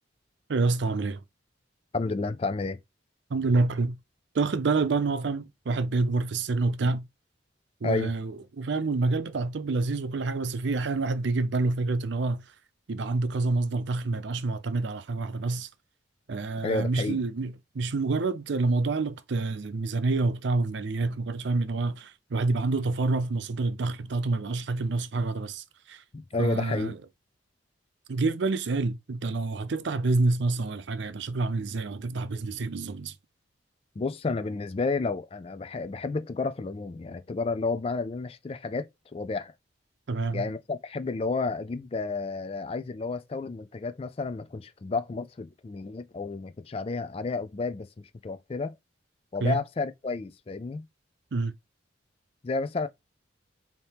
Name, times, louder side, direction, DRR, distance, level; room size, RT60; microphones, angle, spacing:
voice 1, 0.5-1.2 3.3-4.0 4.3-7.1 7.8-12.4 12.9-15.7 16.3-26.0 26.4-27.0 28.1-33.1 40.1-40.5 49.4-49.6 51.3-51.5, right 3 dB, 65° right, 0.5 m, -27 dB
voice 2, 1.9-2.8 7.8-8.1 16.6-17.2 26.1-26.9 34.0-39.5 40.3-48.7 49.3-50.9 52.4-52.9, left 3 dB, 30° left, 0.3 m, -31 dB
4.2 x 2.8 x 3.3 m
head